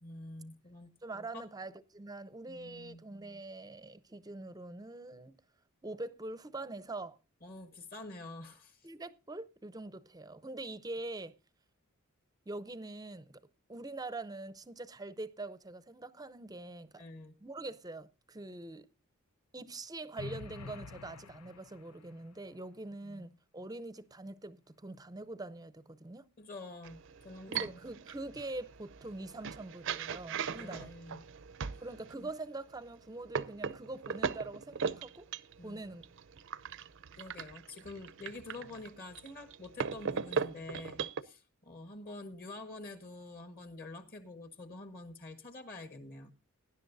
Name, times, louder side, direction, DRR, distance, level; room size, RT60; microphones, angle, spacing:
voice 1, 0.0-0.9 1.3-1.4 2.5-3.0 7.4-8.9 17.0-17.3 23.0-23.2 26.4-27.8 30.5-31.2 32.2-32.3 35.6-35.8 37.2-46.3, left 2 dB, 40° left, 1.5 m, -47 dB
voice 2, 1.0-5.4 5.8-7.2 8.8-11.3 12.5-13.4 13.7-17.0 17.4-18.9 19.5-26.3 27.5-30.9 31.8-35.3 35.6-36.0, right 2 dB, 15° right, 0.6 m, -44 dB
sound 1, 20.2-22.2, left 4 dB, 75° left, 0.6 m, -47 dB
sound 2, 26.8-32.1 32.8-41.2, right 6 dB, 60° right, 0.6 m, -39 dB
19.0 x 10.5 x 2.6 m
head